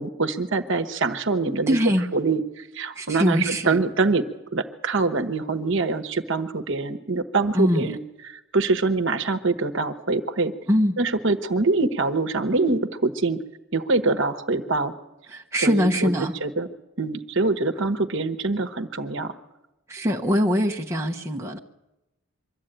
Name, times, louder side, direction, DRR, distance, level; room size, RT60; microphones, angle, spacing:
voice 1, 0.0-1.8 2.1-4.3 4.5-8.0 8.5-10.5 11.0-13.4 13.7-14.9 15.6-16.1 16.4-16.7 17.0-19.3, right 3 dB, 55° right, 9 dB, 1.1 m, -24 dB
voice 2, 1.7-2.1 2.9-3.8 7.5-7.9 10.7-11.0 15.3-16.3 19.9-21.6, equal, 10° right, 1 dB, 1.0 m, -22 dB
23.5 x 13.0 x 9.0 m, 0.98 s
head